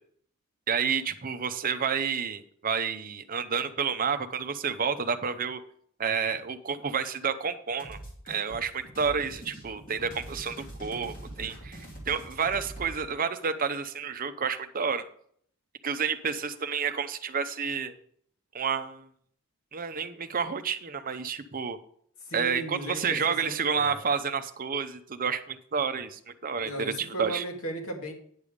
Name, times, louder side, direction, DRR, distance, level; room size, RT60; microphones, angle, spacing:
voice 1, 0.7-5.6 6.0-8.0 8.3-15.0 15.8-17.9 18.5-19.1 19.7-21.8 22.3-27.4, right 6 dB, 40° right, 10 dB, 0.7 m, -30 dB
sound 1, 7.8-13.0, right 1 dB, 40° left, 2.9 m, -43 dB
voice 2, 22.3-24.0 26.6-28.1, right 1 dB, 65° left, 1 dB, 2.1 m, -36 dB
9.7 x 6.8 x 5.0 m, 0.62 s
head